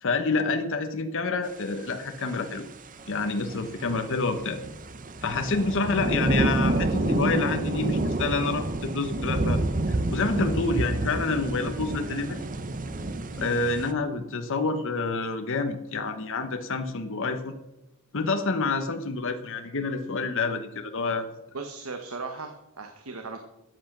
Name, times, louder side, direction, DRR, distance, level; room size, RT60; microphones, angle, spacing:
voice 1, 0.0-2.7 3.1-4.6 5.2-9.6 9.9-12.4 13.4-17.6 18.1-21.3, left 3 dB, 65° left, 7 dB, 1.1 m, -28 dB
sound 1, 2.5-2.7 3.0-13.9, right 2 dB, 40° right, 0.8 m, -29 dB
voice 2, 21.5-23.4, right 4 dB, 70° right, 6 dB, 1.2 m, -37 dB
13.5 x 8.1 x 6.0 m, 0.92 s
head